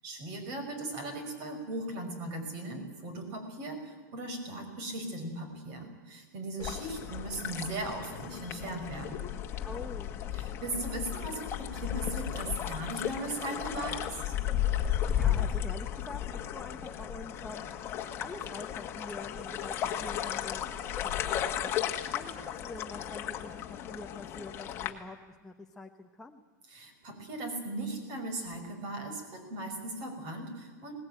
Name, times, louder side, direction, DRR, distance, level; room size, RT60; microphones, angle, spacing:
voice 1, 0.0-9.3 10.3-14.2 26.7-30.9, right 2 dB, 40° right, 7 dB, 5.5 m, -38 dB
sound 1, 6.6-24.9, left 10 dB, 25° left, 1.7 m, -34 dB
voice 2, 9.6-10.1 15.0-17.9 18.2-26.4, left 2 dB, 5° left, 2 dB, 0.9 m, -46 dB
21.0 x 19.5 x 9.0 m, 1.4 s
supercardioid pair, 150°, 10 cm